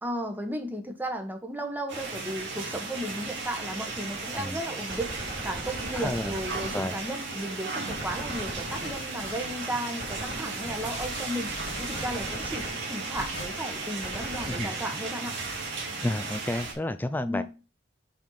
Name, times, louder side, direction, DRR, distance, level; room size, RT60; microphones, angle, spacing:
voice 1, 0.0-5.1 5.4-11.5 11.8-15.3 17.2-17.4, right 1 dB, 10° right, 4 dB, 1.2 m, -34 dB
sound 1, 1.9-16.7, right 3 dB, 75° right, 2.2 m, -35 dB
Gunshot gunfire, 4.9-7.4 7.9-9.3 10.0-11.0 11.9-13.3 14.0-15.3, right 1 dB, 55° right, 2.8 m, -40 dB
voice 2, 5.9-6.3 6.7-6.9 14.5-14.7 16.0-17.4, left 1 dB, 10° left, 12 dB, 0.3 m, -31 dB
sound 2, 8.7-9.7 10.2-10.3 10.6-13.7 14.3-14.4, left 2 dB, 75° left, 2.2 m, -41 dB
6.0 x 4.3 x 5.4 m, 0.34 s
head